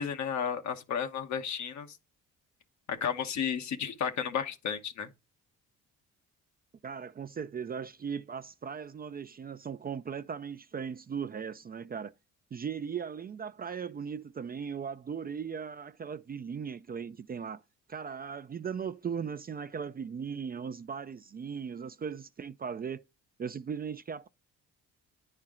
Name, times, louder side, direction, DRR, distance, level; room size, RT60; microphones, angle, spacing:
voice 1, 0.0-1.9 2.9-5.1, left 7 dB, 65° left, 1.0 m, -33 dB
voice 2, 6.8-12.1 12.5-17.6 17.9-23.0 23.4-24.3, right 7 dB, 30° right, 0.4 m, -38 dB
9.6 x 4.4 x 3.7 m
cardioid pair, 90°, 30 cm